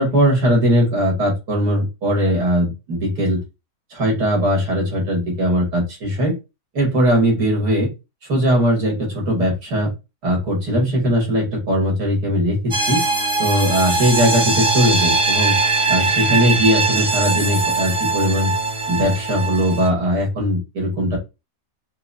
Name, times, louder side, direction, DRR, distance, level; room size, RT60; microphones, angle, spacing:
voice 1, 0.0-3.4 3.9-6.3 6.7-7.9 8.3-9.9 10.2-13.0 13.4-15.6 15.9-18.5 18.9-21.2, equal, 70° right, -1 dB, 2.4 m, -19 dB
sound 1, 12.7-19.9, right 3 dB, 25° right, 0.6 m, -20 dB
5.3 x 2.1 x 2.6 m, 0.25 s
omnidirectional pair, 1.8 m